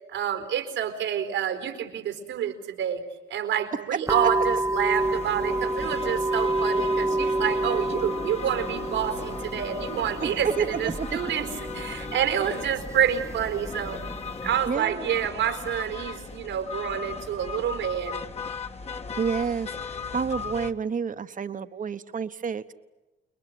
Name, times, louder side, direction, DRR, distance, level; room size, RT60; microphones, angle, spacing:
voice 1, 0.1-3.0 3.3-11.5 11.7-14.0 14.4-18.2, right 9 dB, 90° right, 6 dB, 4.3 m, -28 dB
sound 1, 4.1-14.7, right 2 dB, 15° right, 1.0 m, -29 dB
sound 2, 5.0-20.7, left 5 dB, 30° left, 1.5 m, -37 dB
voice 2, 10.2-11.1 14.7-15.1 19.2-22.7, right 6 dB, 40° right, 11 dB, 1.3 m, -29 dB
30.0 x 21.0 x 9.5 m, 1.1 s
cardioid pair, 90°, 20 cm